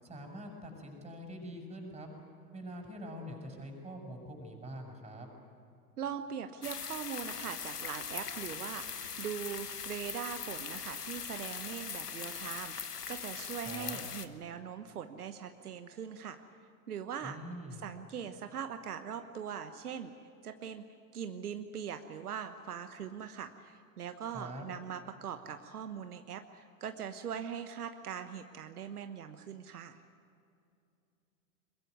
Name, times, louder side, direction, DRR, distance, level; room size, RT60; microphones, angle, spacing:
voice 1, 0.0-2.1 2.5-5.3 13.7-14.0 17.2-17.9 24.3-24.6, equal, 15° right, 2 dB, 6.9 m, -44 dB
voice 2, 6.0-16.4 16.9-17.4 17.8-20.1 20.4-20.8 21.1-30.0, right 8 dB, 75° right, 8 dB, 1.2 m, -41 dB
sound 1, 6.6-14.3, left 7 dB, 85° left, 1.3 m, -41 dB
22.5 x 21.5 x 9.5 m, 2.6 s
figure-of-eight pair, 95°, 46 cm